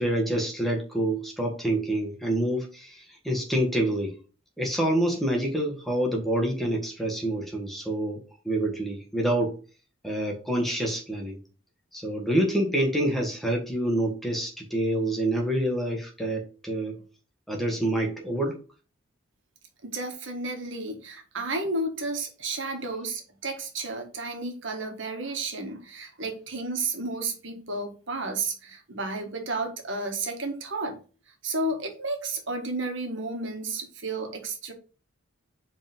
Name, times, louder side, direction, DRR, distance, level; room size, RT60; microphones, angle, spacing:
voice 1, 0.0-4.1 4.6-9.5 10.0-11.4 11.9-17.0 17.5-18.6, right 1 dB, ahead, 0 dB, 1.4 m, -27 dB
voice 2, 19.8-31.0 31.4-34.7, right 2 dB, 60° right, 4 dB, 1.4 m, -32 dB
5.1 x 3.7 x 5.2 m, 0.36 s
head